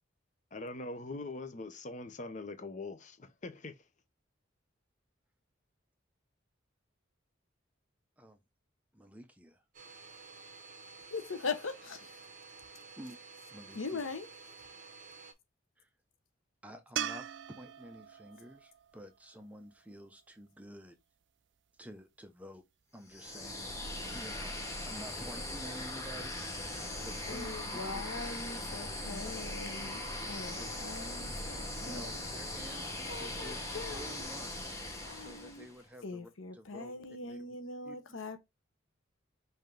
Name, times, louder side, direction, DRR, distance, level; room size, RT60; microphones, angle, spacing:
voice 1, 0.5-3.8, left 2 dB, 40° left, 0.7 m, -42 dB
voice 2, 8.9-9.6 13.0-13.2 13.5-14.1 15.8-15.9 16.6-21.0 21.8-22.6 22.9-23.7 24.1-26.7 27.0-27.6 27.9-28.0 30.0-30.7 31.9-32.9 33.2-33.6 33.9-34.8 35.1-37.5 37.8-38.0, equal, 5° right, 0.7 m, -50 dB
Domestic sounds home sounds, 9.7-15.3, right 4 dB, 40° right, 1.0 m, -52 dB
voice 3, 11.1-12.2 13.7-14.3 27.3-32.1 32.6-34.2 35.0-35.6 36.0-38.4, left 4 dB, 90° left, 0.9 m, -41 dB
sound 1, 17.0-20.2 23.5-23.6, right 10 dB, 65° right, 0.4 m, -41 dB
sound 2, 23.1-35.8, left 1 dB, 15° left, 1.1 m, -40 dB
5.6 x 2.8 x 3.3 m
head